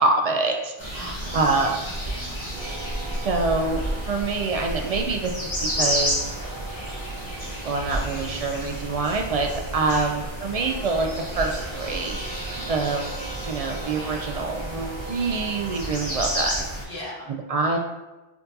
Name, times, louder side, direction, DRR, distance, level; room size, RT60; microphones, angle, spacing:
voice 1, 0.0-1.7 3.1-3.8 4.1-5.5 5.8-6.2 7.6-11.1 11.4-13.1 13.5-16.7 17.3-17.8, right 3 dB, 55° right, 3 dB, 0.4 m, -26 dB
sound 1, 0.8-16.8, equal, 25° left, 1.5 m, -31 dB
voice 2, 1.0-2.7 9.9-10.1 12.5-12.9 16.9-17.3, left 1 dB, 85° left, -9 dB, 1.7 m, -40 dB
sound 2, 2.5-5.0 5.3-16.6, right 3 dB, 80° right, 1.9 m, -41 dB
4.5 x 3.9 x 2.6 m, 1.1 s
omnidirectional pair, 1.0 m